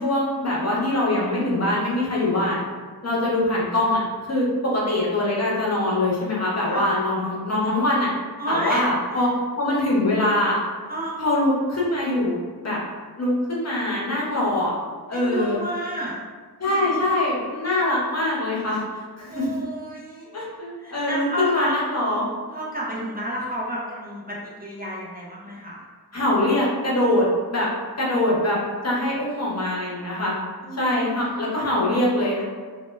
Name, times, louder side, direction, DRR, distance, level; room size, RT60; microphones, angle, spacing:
voice 1, 0.0-2.6 3.0-4.0 4.3-8.1 8.5-9.3 9.6-10.6 11.2-12.8 13.2-14.7 15.1-15.6 16.6-19.5 20.3-22.2 26.1-27.7 28.0-28.6 28.8-30.3 30.8-32.4, left 1 dB, 40° left, -4 dB, 0.7 m, -23 dB
voice 2, 8.4-8.8 10.9-11.2 15.1-16.2 16.6-16.8 19.3-20.3 20.8-21.8 22.5-25.8 30.6-31.9, right 1 dB, 25° right, -6 dB, 0.5 m, -31 dB
2.1 x 2.0 x 3.2 m, 1.5 s
wide cardioid pair, 70°, 39 cm